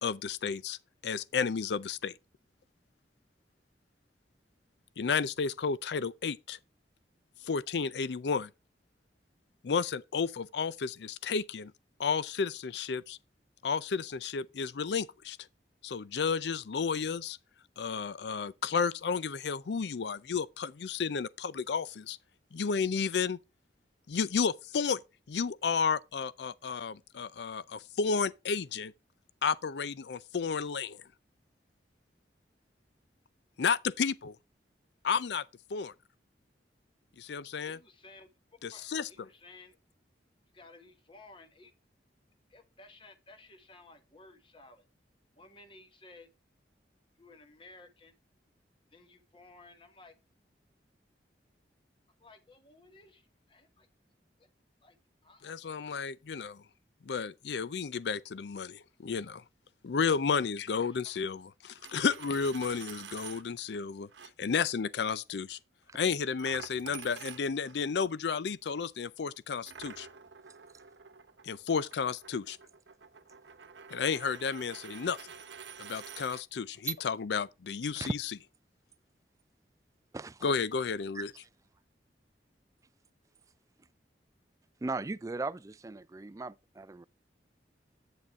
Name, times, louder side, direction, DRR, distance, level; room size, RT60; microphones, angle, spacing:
voice 1, 0.0-0.8 1.0-2.1 5.0-6.6 7.4-8.5 9.6-11.7 12.0-13.2 13.6-15.4 15.8-17.4 17.8-22.2 22.5-23.4 24.1-25.0 25.3-28.9 29.4-31.0 33.6-34.4 35.0-35.4 35.7-35.9 37.2-37.8 38.6-39.1 55.4-56.6 57.0-59.4 59.8-64.1 64.4-65.6 65.9-70.1 71.4-72.6 73.9-75.2 75.8-78.2 80.4-81.3, left 5 dB, 75° left, 0.5 m, -32 dB
voice 2, 37.6-38.3 38.7-39.8 40.5-41.7 42.5-44.9 45.3-46.3 47.2-48.1 48.9-50.1 52.2-53.9 54.4-54.5 54.8-55.0 55.2-55.6 61.0-61.2, left 2 dB, 30° left, 1.3 m, -56 dB
Coin (dropping), 61.7-63.4 64.1-64.3 66.4-67.8 69.7-76.4, right 7 dB, 90° right, 1.0 m, -48 dB
voice 3, 80.1-80.5 81.2-81.3 84.8-87.1, right 3 dB, 20° right, 0.3 m, -37 dB
9.0 x 6.4 x 3.5 m
head